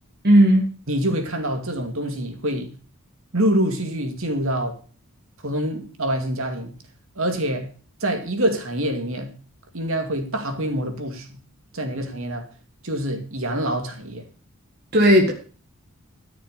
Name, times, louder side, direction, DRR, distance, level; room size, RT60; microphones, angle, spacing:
voice 1, 0.2-0.7 14.9-15.3, equal, 45° right, 2.0 m, -14 dB
voice 2, 0.9-2.7 3.3-4.8 5.4-6.8 7.2-7.7 8.0-9.3 9.7-11.4 11.7-12.5 12.8-14.2, right 1 dB, 65° right, 2.4 m, -25 dB
13.5 x 6.7 x 6.7 m
head